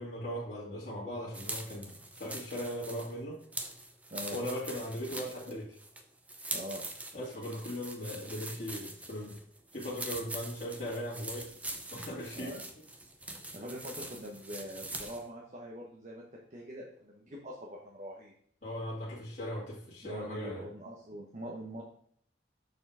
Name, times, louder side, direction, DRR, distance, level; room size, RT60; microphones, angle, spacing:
voice 1, 0.0-3.4 4.3-5.8 7.1-9.4 9.7-11.5 11.9-12.6 18.6-20.6, equal, 45° left, -7 dB, 2.3 m, -38 dB
sound 1, 1.3-15.3, right 2 dB, 10° right, 0.6 m, -43 dB
voice 2, 6.5-6.9 12.3-12.6 13.5-18.3 20.0-21.8, equal, 40° right, -2 dB, 1.1 m, -43 dB
6.7 x 4.4 x 4.9 m, 0.63 s
head